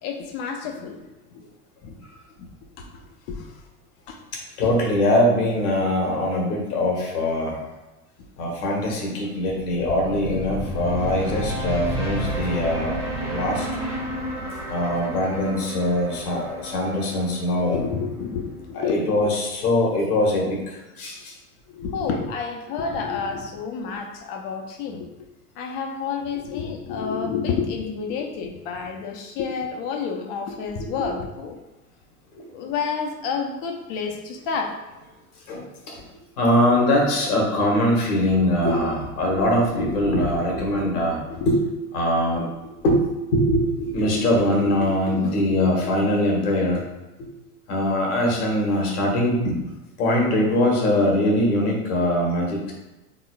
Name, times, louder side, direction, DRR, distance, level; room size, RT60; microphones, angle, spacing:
voice 1, 0.0-1.0 1.3-1.4 1.8-1.9 2.4-2.5 2.8-3.0 3.3-3.4 4.1-4.2 4.6-4.7 17.7-19.0 21.7-25.3 25.6-31.6 32.5-34.7 41.4-41.5, left 5 dB, 40° left, 3 dB, 0.7 m, -29 dB
voice 2, 4.6-7.6 8.4-13.0 13.2-13.7 14.7-17.9 18.8-21.1 32.3-32.4 35.5-36.0 36.4-41.2 41.4-41.6 41.9-42.5 42.8-43.0 43.3-46.8 47.7-49.5 50.0-52.7, left 1 dB, 65° left, -1 dB, 1.5 m, -22 dB
sound 1, 9.6-18.6, equal, 5° right, 1.0 m, -31 dB
4.0 x 3.9 x 2.3 m, 1.1 s
hypercardioid pair, 90°, 47 cm